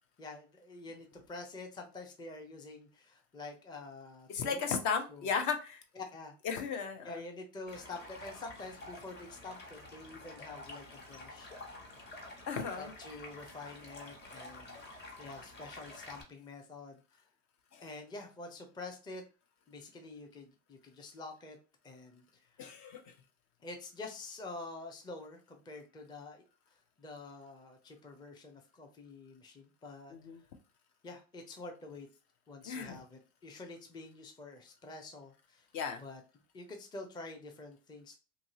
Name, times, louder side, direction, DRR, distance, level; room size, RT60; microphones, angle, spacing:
voice 1, 0.2-4.7 5.1-5.3 6.0-6.3 7.0-11.5 12.7-17.2 17.8-19.2 19.7-21.6 21.8-22.2 22.6-22.7 23.6-26.4 27.0-30.1 31.0-32.1 32.5-35.7 36.0-36.2 36.5-38.2, left 3 dB, 10° left, 3 dB, 0.5 m, -47 dB
voice 2, 4.3-5.8 6.4-7.2 12.5-12.9 17.7-17.8 22.6-23.1 30.1-30.4 32.6-33.0 35.7-36.0, left 6 dB, 50° left, 7 dB, 0.7 m, -35 dB
Stream, 7.7-16.2, left 2 dB, 25° left, 1.1 m, -49 dB
2.8 x 2.6 x 2.8 m, 0.34 s
hypercardioid pair, 95°, 39 cm